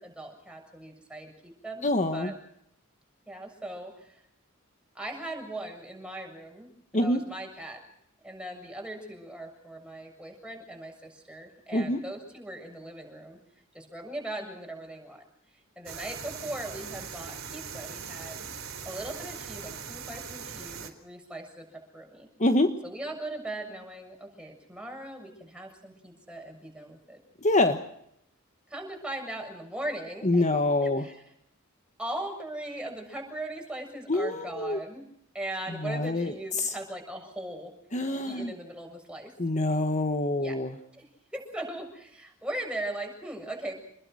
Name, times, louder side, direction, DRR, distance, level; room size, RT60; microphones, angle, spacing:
voice 1, 0.0-2.3 3.3-4.2 5.0-7.8 8.2-13.4 13.7-15.2 15.8-18.4 18.8-22.3 22.8-27.2 28.7-30.5 30.8-31.2 32.0-35.0 35.3-37.7 38.3-39.3 40.4-40.6 40.9-41.1 41.3-43.7, right 1 dB, 5° right, 2 dB, 7.0 m, -39 dB
voice 2, 1.8-2.3 6.9-7.2 11.7-12.0 22.4-22.8 27.4-27.8 30.2-31.1 34.1-34.8 35.7-36.7 37.9-38.5 39.4-40.7, left 2 dB, 35° left, 7 dB, 1.4 m, -26 dB
sound 1, 15.9-20.9, right 6 dB, 80° right, 3.7 m, -40 dB
28.0 x 21.0 x 6.4 m, 0.73 s
head